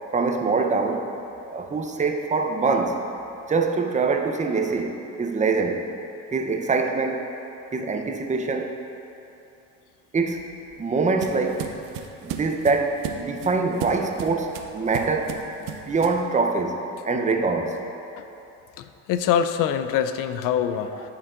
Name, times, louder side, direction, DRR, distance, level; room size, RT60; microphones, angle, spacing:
voice 1, 0.1-1.1 1.5-3.0 3.5-5.8 6.3-7.2 7.7-8.7 10.1-10.4 10.8-11.6 12.2-15.4 15.7-16.8 17.0-17.8, right 4 dB, 20° right, 3 dB, 0.6 m, -24 dB
sound 1, 10.2-16.3, right 8 dB, 75° right, 0.6 m, -36 dB
voice 2, 18.8-21.1, left 8 dB, 70° left, 10 dB, 0.5 m, -24 dB
11.0 x 4.6 x 2.5 m, 2.8 s
supercardioid pair, 75°, 34 cm